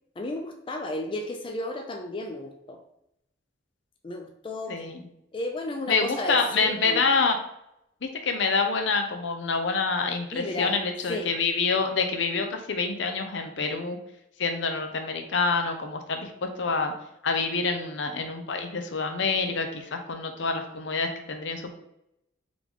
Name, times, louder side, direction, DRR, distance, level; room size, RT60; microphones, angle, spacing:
voice 1, 0.2-2.8 4.0-4.8 5.3-7.1 10.3-10.8 11.1-11.4, left 2 dB, 25° left, 3 dB, 0.4 m, -33 dB
voice 2, 4.7-5.0 5.9-7.4 8.0-14.0 14.4-16.9 17.2-21.7, left 4 dB, 70° left, 5 dB, 0.6 m, -27 dB
3.8 x 3.1 x 3.6 m, 0.79 s
head